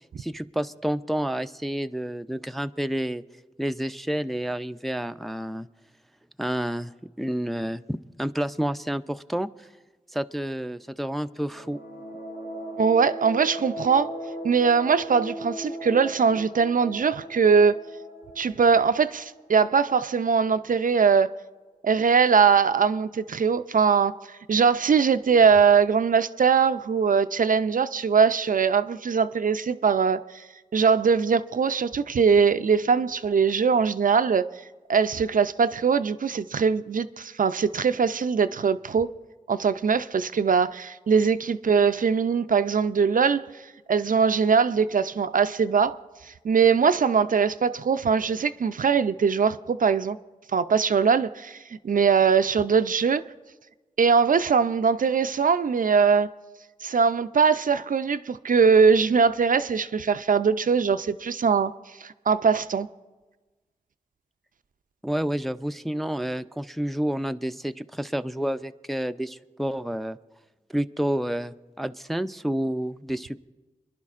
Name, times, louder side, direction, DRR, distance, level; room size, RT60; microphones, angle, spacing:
voice 1, 0.2-3.2 3.6-5.7 6.4-6.9 7.2-9.7 10.1-11.8 65.0-70.2 70.7-73.5, equal, ahead, 0.4 m, -29 dB
sound 1, 11.3-19.9, right 1 dB, 65° left, 3.5 m, -38 dB
voice 2, 12.8-14.1 14.4-17.8 18.4-21.3 21.8-24.1 24.5-30.4 30.7-34.5 34.9-39.1 39.5-43.4 43.9-46.0 46.3-50.2 50.5-51.6 51.8-53.2 54.0-56.3 56.8-61.7 62.0-62.9, right 6 dB, 60° right, 0.4 m, -21 dB
29.0 x 11.0 x 2.4 m
cardioid pair, 45°, 15 cm